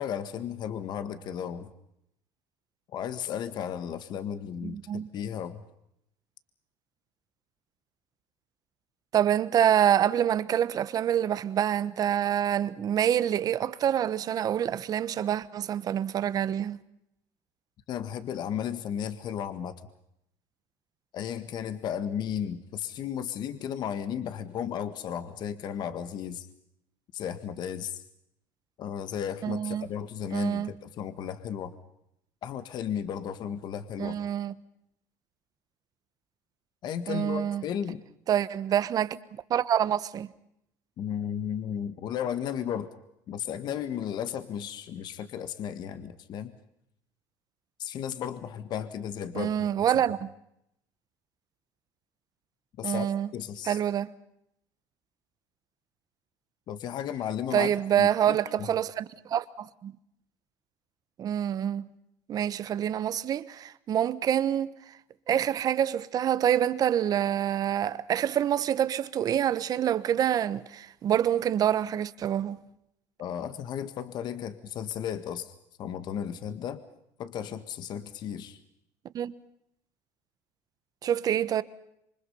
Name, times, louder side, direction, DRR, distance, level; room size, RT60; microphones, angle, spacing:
voice 1, 0.0-1.7 2.9-5.6 17.9-19.7 21.1-26.5 27.1-28.0 28.8-31.7 32.4-34.2 36.8-38.0 41.0-42.9 43.3-46.5 47.8-49.5 52.8-53.1 53.3-53.8 56.7-58.4 73.2-76.8 77.2-78.6, left 9 dB, 50° left, 1.7 m, -34 dB
voice 2, 4.6-5.1 9.1-16.8 29.4-29.9 30.3-30.7 34.0-34.5 37.1-37.6 38.3-40.3 49.3-50.3 52.8-53.3 53.6-54.1 57.5-59.9 61.2-61.9 62.3-65.0 65.3-72.6 79.1-79.4 81.0-81.6, right 10 dB, 45° right, 1.1 m, -26 dB
27.5 x 24.5 x 5.6 m
cardioid pair, 120°, 9 cm